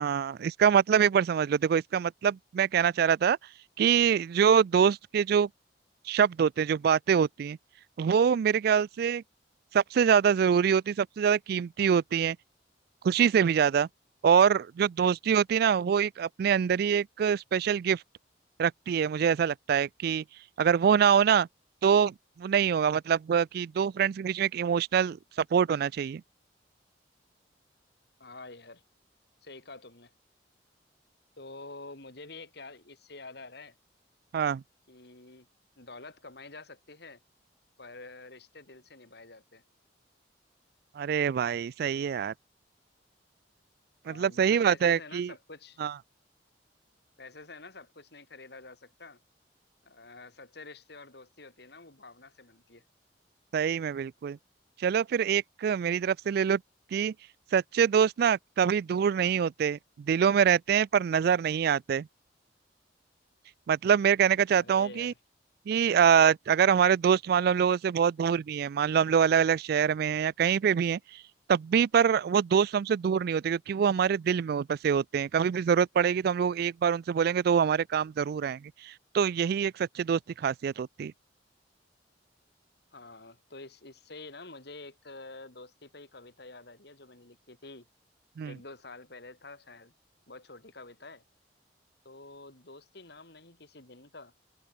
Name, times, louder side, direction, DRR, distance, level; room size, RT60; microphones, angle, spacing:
voice 1, 0.0-3.4 3.8-5.5 6.1-7.6 8.0-9.2 9.7-12.4 13.0-13.9 14.2-18.0 18.6-20.2 20.6-21.5 21.8-25.2 25.5-26.2 34.3-34.6 41.0-42.3 44.1-45.3 45.8-45.9 53.5-54.4 54.8-56.6 56.9-57.1 57.5-62.1 63.7-65.1 65.7-71.2 71.5-81.1 88.4-88.5, right 7 dB, 60° right, 0.3 m, -25 dB
voice 2, 28.2-28.8 29.4-30.1 31.4-33.8 34.9-35.5 35.8-37.2 37.8-39.6 44.0-45.8 47.2-49.2 49.8-52.8 64.6-65.2 82.9-87.9 88.4-89.9 90.3-91.2 92.0-94.3, left 3 dB, 65° left, 3.9 m, -48 dB
head